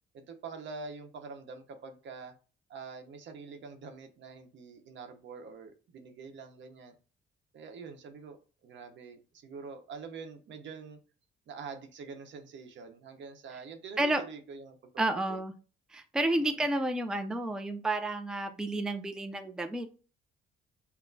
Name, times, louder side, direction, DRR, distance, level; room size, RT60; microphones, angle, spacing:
voice 1, 0.1-2.3 2.7-6.9 7.5-11.0 11.5-15.4 16.5-16.6, right 4 dB, 70° right, 6 dB, 0.8 m, -45 dB
voice 2, 15.0-15.5 15.9-19.9, right 1 dB, 5° right, 7 dB, 0.4 m, -31 dB
5.9 x 2.1 x 2.7 m, 0.37 s
cardioid pair, 90°, 20 cm